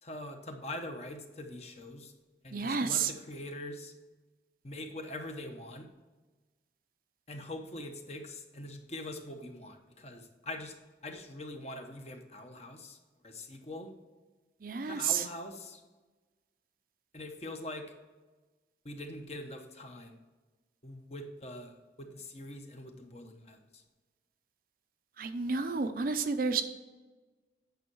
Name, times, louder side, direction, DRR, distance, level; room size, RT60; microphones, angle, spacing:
voice 1, 0.0-2.1 2.4-3.9 4.6-5.9 7.3-10.7 11.0-13.0 13.2-13.9 14.9-15.8 17.1-17.9 18.8-20.2 20.8-21.7 22.0-23.8, left 1 dB, 35° left, 5 dB, 0.9 m, -43 dB
voice 2, 2.5-3.1 14.6-15.3 25.2-26.6, right 5 dB, 50° right, 8 dB, 0.6 m, -30 dB
9.2 x 5.5 x 4.7 m, 1.2 s
head